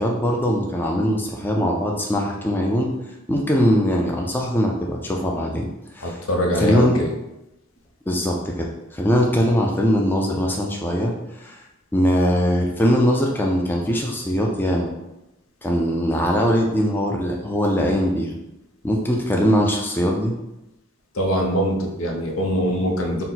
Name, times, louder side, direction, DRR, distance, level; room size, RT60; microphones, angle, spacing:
voice 1, 0.0-2.9 3.3-5.7 5.9-6.2 6.5-7.0 8.1-11.6 11.9-14.9 15.6-18.3 18.8-20.3, equal, 10° left, -1 dB, 0.4 m, -21 dB
voice 2, 6.0-7.1 21.2-23.2, equal, 75° left, 1 dB, 0.7 m, -23 dB
4.2 x 2.1 x 3.9 m, 0.92 s
head